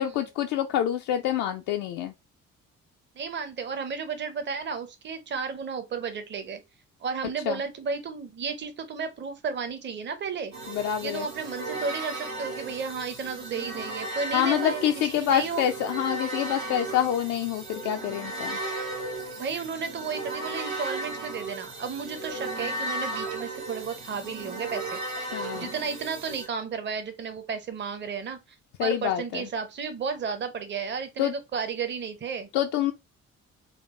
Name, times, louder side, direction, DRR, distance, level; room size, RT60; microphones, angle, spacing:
voice 1, 0.0-2.1 7.5-7.6 10.7-11.3 14.3-18.6 25.3-25.7 28.8-29.5 31.2-31.3 32.5-32.9, left 10 dB, 50° left, 0.5 m, -27 dB
voice 2, 3.2-6.6 7.0-10.5 11.0-15.6 19.4-25.0 25.5-28.4 28.8-32.5, right 5 dB, 30° right, 0.7 m, -33 dB
sound 1, 10.5-26.5, right 2 dB, 70° right, 1.3 m, -35 dB
4.3 x 2.3 x 3.1 m
figure-of-eight pair, 40°, 40 cm